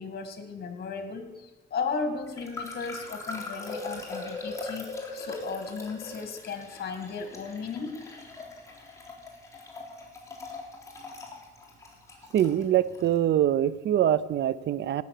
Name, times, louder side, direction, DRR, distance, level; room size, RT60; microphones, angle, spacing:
voice 1, 0.0-8.0, left 5 dB, 55° left, 8 dB, 2.1 m, -35 dB
sound 1, 2.3-13.1, left 2 dB, 15° left, 3.5 m, -41 dB
voice 2, 12.3-15.0, right 11 dB, 65° right, 18 dB, 0.6 m, -24 dB
17.5 x 6.9 x 6.7 m, 1.1 s
cardioid pair, 90°, 20 cm